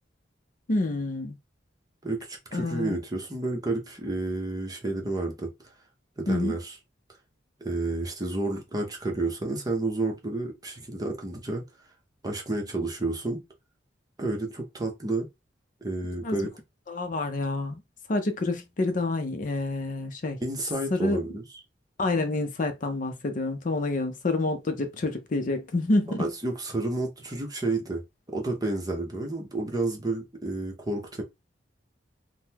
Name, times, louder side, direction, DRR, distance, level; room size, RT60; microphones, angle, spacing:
voice 1, 0.7-1.4 2.5-3.0 6.3-6.6 16.2-16.4 16.9-17.8 18.1-20.4 20.9-21.2 22.0-26.3, left 2 dB, 45° left, 0.5 m, -28 dB
voice 2, 2.0-5.5 6.2-6.7 7.6-11.6 12.2-13.4 14.2-15.3 15.8-16.5 20.4-21.4 26.2-28.0 28.3-31.2, right 2 dB, 20° right, 0.7 m, -30 dB
3.7 x 2.1 x 2.8 m
head